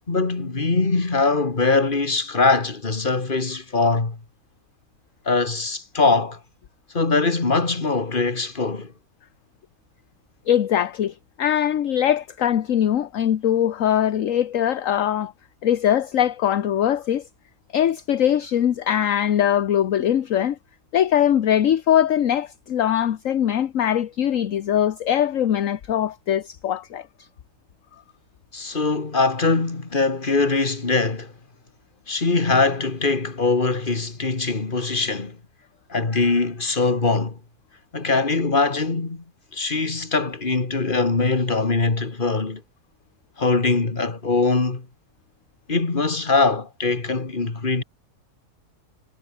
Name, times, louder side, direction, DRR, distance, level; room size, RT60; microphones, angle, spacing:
voice 1, 0.1-4.2 5.3-6.4 6.9-8.9 28.5-31.3 32.1-35.4 35.9-37.4 37.9-39.2 39.5-42.6 43.4-44.9 45.7-47.8, left 3 dB, 30° left, 2.4 m, -22 dB
voice 2, 10.5-15.3 15.6-17.2 17.7-20.6 20.9-27.1, left 10 dB, 60° left, 1.2 m, -21 dB
omnidirectional pair, 1.7 m